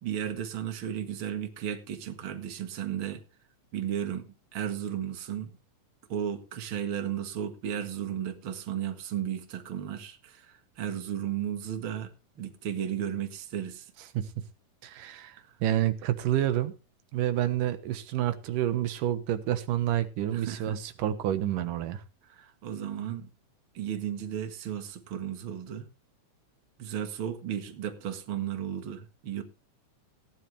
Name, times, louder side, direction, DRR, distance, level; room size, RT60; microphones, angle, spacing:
voice 1, 0.0-3.2 3.7-5.5 6.1-13.9 15.4-15.6 20.3-20.8 22.2-23.3 23.7-25.9 26.8-29.4, right 9 dB, 45° right, 2.2 m, -34 dB
voice 2, 14.8-16.7 17.1-22.0, right 12 dB, 90° right, 2.8 m, -29 dB
17.5 x 10.5 x 3.4 m
omnidirectional pair, 3.7 m